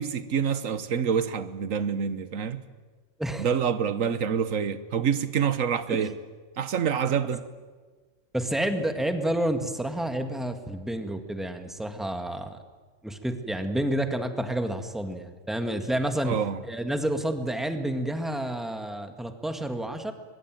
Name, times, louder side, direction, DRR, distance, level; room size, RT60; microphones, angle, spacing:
voice 1, 0.0-2.6 3.4-6.1 6.6-7.4 16.2-16.6, right 7 dB, 85° right, 1.5 m, -27 dB
voice 2, 8.3-12.6 13.0-20.1, right 1 dB, ahead, 1.8 m, -29 dB
22.5 x 22.0 x 9.2 m
omnidirectional pair, 1.3 m